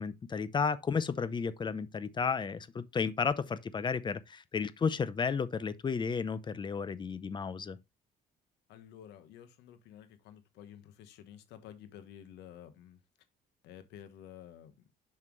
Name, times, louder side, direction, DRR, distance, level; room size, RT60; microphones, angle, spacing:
voice 1, 0.0-7.8, left 5 dB, 25° left, 0.6 m, -33 dB
voice 2, 8.7-13.0 13.6-14.7, left 10 dB, 85° left, 1.3 m, -51 dB
7.6 x 5.8 x 3.1 m
cardioid pair, 110°, 17 cm